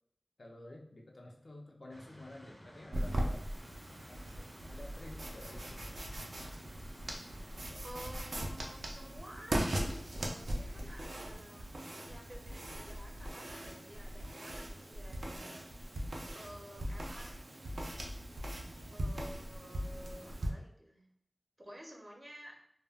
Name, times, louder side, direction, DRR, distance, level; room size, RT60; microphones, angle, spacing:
voice 1, 0.4-3.5 4.1-6.1 7.6-7.8 18.8-18.9, left 1 dB, 70° left, 0 dB, 0.5 m, -52 dB
sound 1, 1.9-7.7, equal, 10° left, 0.5 m, -55 dB
sound 2, 2.9-20.5, right 1 dB, 80° right, 0.4 m, -40 dB
voice 2, 7.8-11.7 12.1-15.5 16.3-17.8 18.9-21.0 21.6-22.6, equal, 30° right, 1 dB, 0.6 m, -52 dB
2.1 x 2.1 x 3.4 m, 0.71 s
wide cardioid pair, 65°, 0 cm